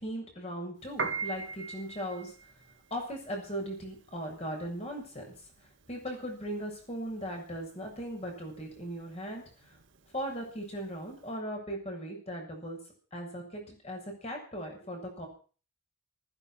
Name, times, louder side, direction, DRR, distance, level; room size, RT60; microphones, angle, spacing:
voice 1, 0.0-2.3 2.9-5.2 5.9-9.7 10.1-12.8 13.1-15.3, equal, 30° left, 1 dB, 7.2 m, -38 dB
Piano, 0.8-11.2, right 4 dB, 55° right, 1.7 m, -41 dB
15.0 x 15.0 x 6.1 m, 0.40 s
head